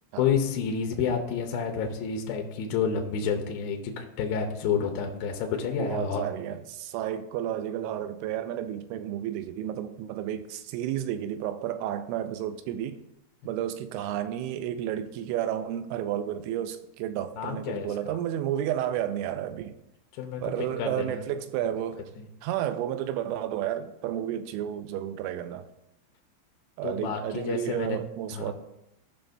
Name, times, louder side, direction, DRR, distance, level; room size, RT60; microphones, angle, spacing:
voice 1, 0.2-6.2 17.4-18.2 20.2-21.2 21.6-21.7 26.8-28.0 28.3-28.5, left 6 dB, 85° left, 2.1 m, -29 dB
voice 2, 5.8-13.0 13.5-19.7 20.4-22.0 22.4-25.7 26.8-28.5, right 11 dB, 85° right, 2.8 m, -31 dB
16.5 x 5.7 x 2.6 m
omnidirectional pair, 5.4 m